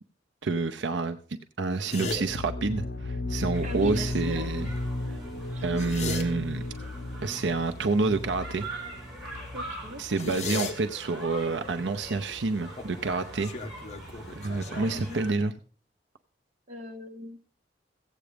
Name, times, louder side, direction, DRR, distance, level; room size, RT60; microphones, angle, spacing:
voice 1, 0.4-1.2 1.6-4.7 5.1-5.2 5.6-6.6 7.2-8.7 10.0-13.5 14.4-15.5, right 3 dB, 80° right, 8 dB, 0.7 m, -28 dB
sound 1, 1.9-2.2 5.6-6.3 10.2-10.7 12.8-13.1 13.4-15.5, left 3 dB, 40° left, 1.5 m, -35 dB
sound 2, 2.1-9.7, left 2 dB, 60° left, 1.0 m, -35 dB
sound 3, 3.5-15.3, right 1 dB, ahead, 5.5 m, -43 dB
voice 2, 3.6-4.5 5.5-5.7 9.5-10.0 14.9-15.2 16.7-17.4, left 2 dB, 45° right, 3 dB, 1.7 m, -39 dB
15.5 x 8.3 x 5.1 m, 0.41 s
head